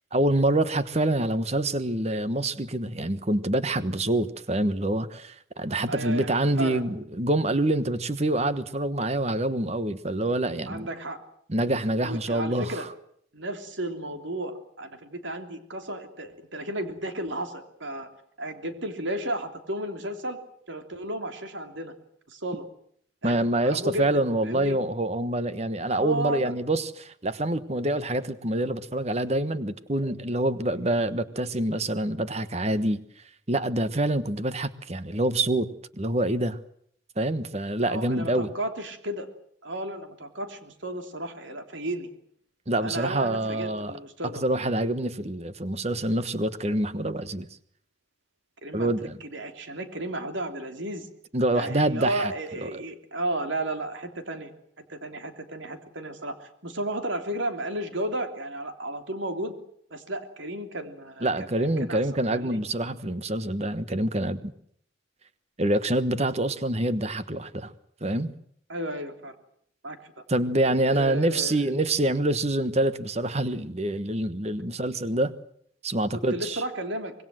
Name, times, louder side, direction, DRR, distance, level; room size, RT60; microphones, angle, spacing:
voice 1, 0.1-10.9 11.5-12.9 23.2-33.0 33.5-36.6 37.2-38.5 42.7-44.0 44.3-47.5 48.7-49.2 51.3-52.3 52.6-52.7 61.2-64.5 65.6-67.7 68.0-68.3 70.3-75.3 75.8-76.6, right 1 dB, 35° right, 13 dB, 1.3 m, -26 dB
voice 2, 5.9-6.8 10.7-11.2 12.0-12.9 13.3-18.1 18.4-20.4 20.7-21.9 22.3-22.6 23.2-24.8 25.9-26.5 37.8-39.3 39.6-42.1 42.8-44.4 48.6-48.9 49.2-51.1 51.5-54.5 54.8-59.5 59.9-61.3 61.6-62.0 62.3-62.6 68.7-69.3 69.8-70.1 70.9-71.6 76.1-77.1, right 1 dB, 70° right, 7 dB, 3.3 m, -33 dB
25.5 x 21.5 x 7.7 m, 0.66 s
head